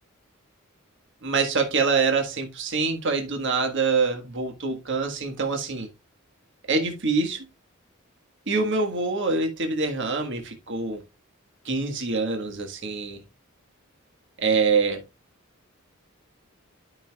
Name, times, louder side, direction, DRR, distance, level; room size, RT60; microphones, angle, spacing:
voice 1, 1.2-5.9 6.7-7.5 8.5-11.0 11.6-13.2 14.4-15.0, right 4 dB, 60° right, 1.5 m, -25 dB
12.5 x 5.6 x 2.3 m
head